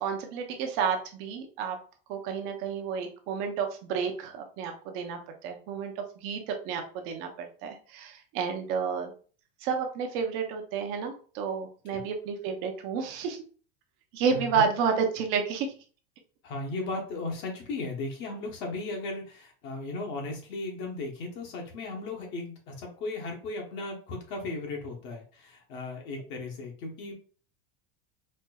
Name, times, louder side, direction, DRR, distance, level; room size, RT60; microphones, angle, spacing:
voice 1, 0.0-1.8 2.1-9.1 9.6-13.4 14.1-15.7, right 6 dB, 45° right, 4 dB, 0.8 m, -31 dB
voice 2, 14.3-14.6 16.4-27.1, left 2 dB, 40° left, 1 dB, 1.0 m, -36 dB
4.3 x 2.5 x 2.3 m, 0.40 s
supercardioid pair, 160°, 29 cm